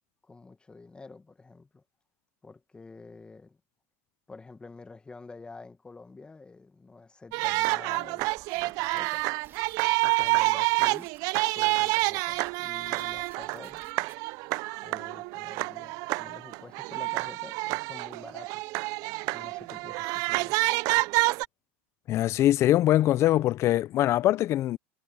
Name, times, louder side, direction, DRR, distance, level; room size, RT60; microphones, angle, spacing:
voice 1, 0.2-1.8 2.4-3.6 4.3-9.2 10.0-13.8 14.8-18.6 19.2-20.6, left 3 dB, 15° left, 1.6 m, -48 dB
sound 1, 7.3-21.5, right 23 dB, 60° right, 0.6 m, -28 dB
sound 2, 8.2-14.2, right 9 dB, 35° right, 3.3 m, -56 dB
voice 2, 22.1-24.8, left 13 dB, 45° left, 0.5 m, -23 dB
supercardioid pair, 110°, 7 cm